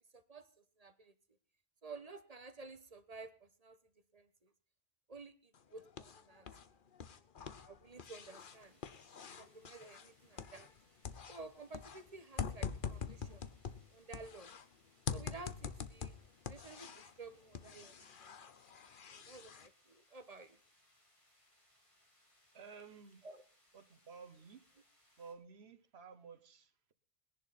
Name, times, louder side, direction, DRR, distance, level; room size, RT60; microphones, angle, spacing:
voice 1, 0.1-0.5 0.8-1.1 1.8-3.8 4.1-4.5 5.1-6.5 7.6-8.8 9.4-10.7 11.3-13.4 13.9-14.5 15.1-16.1 16.4-17.9 18.2-18.5 19.1-20.6 23.2-23.4, right 3 dB, 40° right, 11 dB, 1.2 m, -53 dB
sound 1, 5.5-6.7 6.9-10.8 11.0-14.6 15.1-17.2 17.5-19.7, left 6 dB, 55° left, 1.0 m, -45 dB
sound 2, 8.3-25.3, left 1 dB, 30° left, 3.9 m, -72 dB
voice 2, 22.5-23.3 23.7-24.7 25.2-26.9, right 5 dB, 85° right, 7 dB, 1.4 m, -54 dB
20.0 x 11.0 x 4.1 m, 0.41 s
omnidirectional pair, 1.0 m